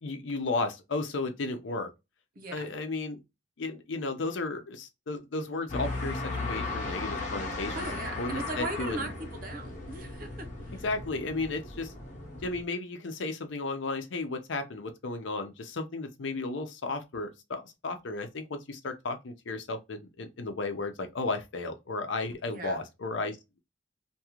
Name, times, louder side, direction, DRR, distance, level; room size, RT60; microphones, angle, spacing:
voice 1, 0.0-1.9 2.5-3.2 3.6-7.8 8.2-9.1 10.8-11.9 12.4-23.4, left 3 dB, 80° left, 0.6 m, -34 dB
voice 2, 2.3-2.7 7.7-10.8 22.5-22.8, right 2 dB, 45° right, 0.7 m, -38 dB
sound 1, 5.7-12.6, left 2 dB, 40° left, 0.8 m, -36 dB
2.6 x 2.4 x 2.9 m
head